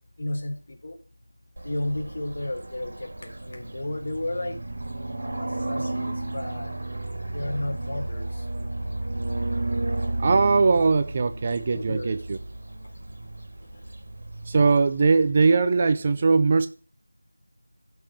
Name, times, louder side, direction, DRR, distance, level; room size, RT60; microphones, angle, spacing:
voice 1, 0.2-0.9 1.6-4.6 5.2-6.7 7.3-8.4 11.7-12.1, left 1 dB, 40° left, 3.4 m, -33 dB
sound 1, 1.6-15.3, right 2 dB, 50° right, 3.0 m, -33 dB
voice 2, 10.2-12.4 14.5-16.7, right 4 dB, 20° right, 0.5 m, -20 dB
15.0 x 6.1 x 4.8 m
figure-of-eight pair, 175°, 0 cm